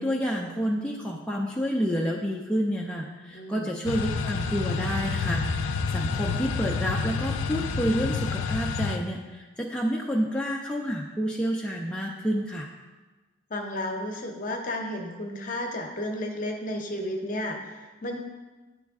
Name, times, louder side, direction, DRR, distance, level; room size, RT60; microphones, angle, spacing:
voice 1, 0.0-12.7, equal, 5° left, -2 dB, 0.4 m, -29 dB
voice 2, 3.3-3.7 13.5-18.2, left 1 dB, 45° left, 3 dB, 0.7 m, -33 dB
sound 1, 3.8-9.0, left 4 dB, 85° left, 0.4 m, -28 dB
9.3 x 3.2 x 3.5 m, 1.3 s
head